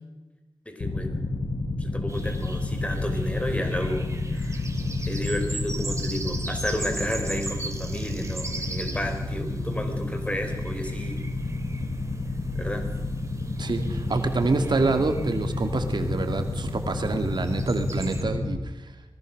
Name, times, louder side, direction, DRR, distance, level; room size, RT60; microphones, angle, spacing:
voice 1, 0.6-1.2 1.8-4.6 5.0-11.3 12.5-12.9, left 1 dB, 15° left, 5 dB, 4.6 m, -32 dB
sound 1, 0.8-18.6, left 2 dB, 60° left, 2.0 m, -30 dB
sound 2, 2.1-18.2, right 2 dB, 40° right, 3.1 m, -40 dB
voice 2, 13.6-18.9, right 3 dB, 65° right, 7 dB, 2.1 m, -27 dB
26.0 x 22.0 x 6.5 m, 1.1 s
wide cardioid pair, 105°, 8 cm